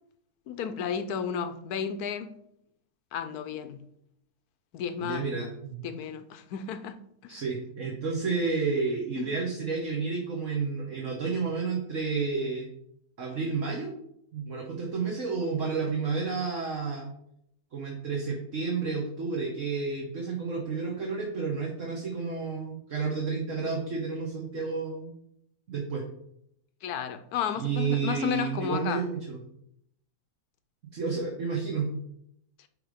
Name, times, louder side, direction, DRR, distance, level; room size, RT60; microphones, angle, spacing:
voice 1, 0.5-2.3 3.1-3.8 4.7-5.3 5.8-7.0 7.2-7.4 9.2-9.3 26.8-29.0, left 8 dB, 70° left, 1.1 m, -33 dB
voice 2, 5.0-5.8 7.3-12.7 13.2-13.9 14.3-17.1 17.7-25.1 25.7-26.0 27.6-29.4 30.9-32.0, right 4 dB, 50° right, 1.5 m, -31 dB
10.0 x 3.4 x 5.0 m
omnidirectional pair, 1.8 m